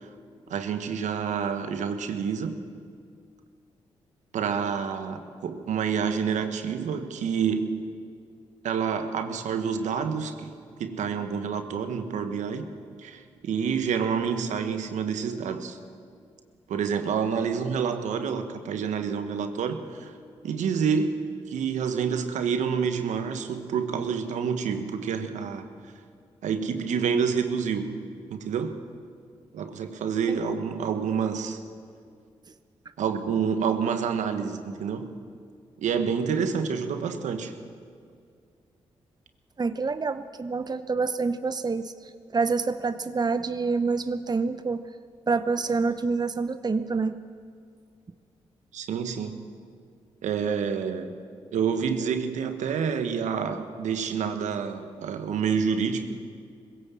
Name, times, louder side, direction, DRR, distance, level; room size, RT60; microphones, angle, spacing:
voice 1, 0.5-2.6 4.3-7.9 8.6-12.7 13.0-15.8 16.7-20.1 20.4-25.7 26.4-28.0 28.3-28.8 29.5-31.6 33.0-35.1 35.8-37.5 48.7-49.4 50.2-51.1 51.5-56.2, right 6 dB, 75° right, 8 dB, 1.3 m, -28 dB
voice 2, 39.6-44.8 45.3-47.2, right 4 dB, 35° right, 11 dB, 0.8 m, -27 dB
21.0 x 16.5 x 7.5 m, 2.2 s
hypercardioid pair, 40°, 12 cm